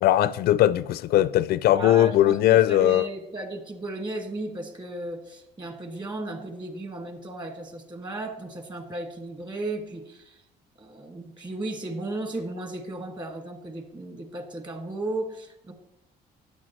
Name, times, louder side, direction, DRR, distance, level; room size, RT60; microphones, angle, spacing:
voice 1, 0.0-3.0, left 13 dB, 70° left, 0.4 m, -20 dB
voice 2, 1.7-10.4 10.8-15.7, right 2 dB, 25° right, 1.8 m, -35 dB
13.5 x 9.8 x 3.1 m
cardioid pair, 110°, 17 cm